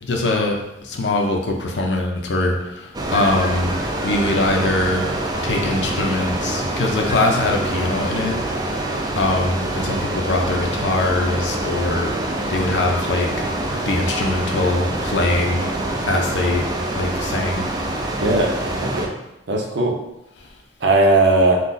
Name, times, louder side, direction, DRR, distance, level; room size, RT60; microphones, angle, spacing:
voice 1, 0.0-5.1 5.4-8.4 9.2-12.1 12.5-13.5 13.9-15.7 16.1-16.7 16.9-17.7, left 2 dB, 75° left, 1 dB, 0.6 m, -22 dB
sound 1, 2.9-19.1, right 1 dB, 20° right, 0.3 m, -25 dB
voice 2, 18.2-19.1 19.5-20.0 20.8-21.6, right 2 dB, 70° right, 1 dB, 0.6 m, -18 dB
2.6 x 2.3 x 3.8 m, 0.91 s
head